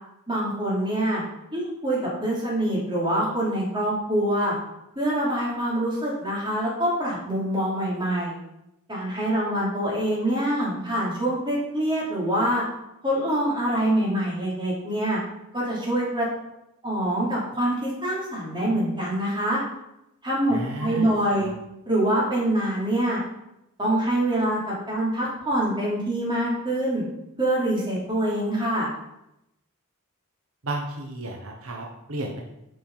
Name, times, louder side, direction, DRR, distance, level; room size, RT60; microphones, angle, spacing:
voice 1, 0.3-1.2 1.5-4.5 4.9-8.4 8.9-12.6 13.0-15.2 15.5-16.3 16.8-19.6 20.2-21.5 21.9-23.2 23.8-27.0 27.4-28.9, right 1 dB, 20° right, -6 dB, 3.1 m, -25 dB
voice 2, 20.5-21.5 30.6-32.4, right 1 dB, 70° right, 0 dB, 1.1 m, -33 dB
7.2 x 5.5 x 5.6 m, 0.86 s
head